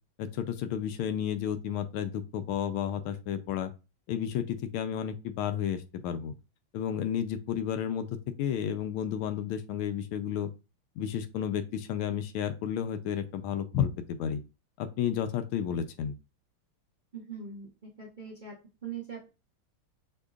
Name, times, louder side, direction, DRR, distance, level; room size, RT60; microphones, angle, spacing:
voice 1, 0.2-3.7 4.1-6.3 6.7-8.1 8.4-10.5 11.0-14.4 14.8-16.1, left 9 dB, 80° left, 9 dB, 1.4 m, -32 dB
voice 2, 17.1-17.7 18.0-18.5 18.8-19.3, right 6 dB, 75° right, -3 dB, 0.4 m, -41 dB
6.5 x 2.8 x 2.3 m, 0.29 s
omnidirectional pair, 2.4 m